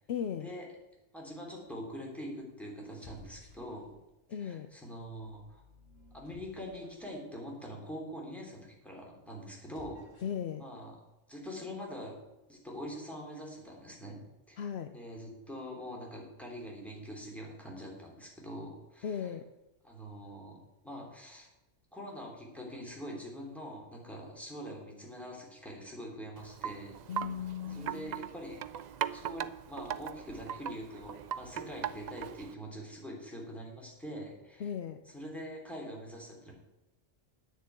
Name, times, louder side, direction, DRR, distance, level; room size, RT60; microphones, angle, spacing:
voice 1, 0.1-0.5 4.3-4.7 10.2-10.6 14.6-14.9 19.0-19.5 27.1-28.2 34.6-35.0, left 8 dB, 65° left, 8 dB, 0.8 m, -37 dB
voice 2, 1.1-4.0 4.4-5.6 6.1-10.0 10.6-10.9 11.3-12.1 12.5-14.2 14.5-19.3 19.8-20.6 20.8-21.5 21.9-27.0 27.7-28.6 29.1-34.7 35.1-36.5, equal, ahead, -2 dB, 3.2 m, -44 dB
sound 1, 2.8-4.2 4.9-7.2 9.5-10.5, left 1 dB, 85° left, 3.7 m, -57 dB
Wind chime, 26.4-32.5, right 9 dB, 80° right, 0.3 m, -40 dB
9.5 x 6.9 x 8.2 m, 1.0 s
omnidirectional pair, 1.3 m